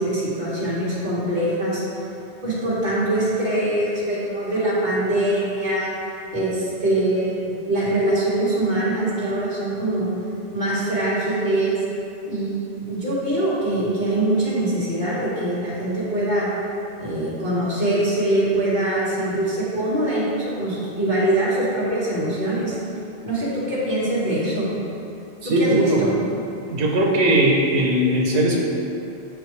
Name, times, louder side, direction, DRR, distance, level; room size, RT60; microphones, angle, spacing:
voice 1, 0.0-1.8 2.4-5.9 6.3-7.4 7.7-10.1 10.5-11.8 12.3-12.6 12.9-16.5 17.0-22.8 23.2-24.7 25.4-26.1, right 1 dB, 45° right, -10 dB, 1.8 m, -23 dB
voice 2, 25.4-26.0 26.7-28.6, right 1 dB, 85° right, -1 dB, 1.0 m, -19 dB
6.8 x 5.0 x 3.2 m, 2.8 s
omnidirectional pair, 1.1 m